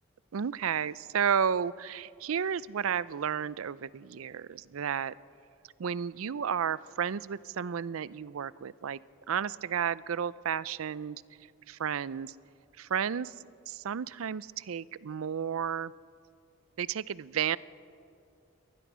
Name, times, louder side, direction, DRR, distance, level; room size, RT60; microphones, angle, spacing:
voice 1, 0.3-5.1 5.8-9.0 9.3-11.2 11.7-12.3 12.8-13.3 13.7-15.9 16.8-17.6, right 7 dB, 75° right, 19 dB, 0.4 m, -32 dB
23.5 x 19.5 x 6.2 m, 2.5 s
head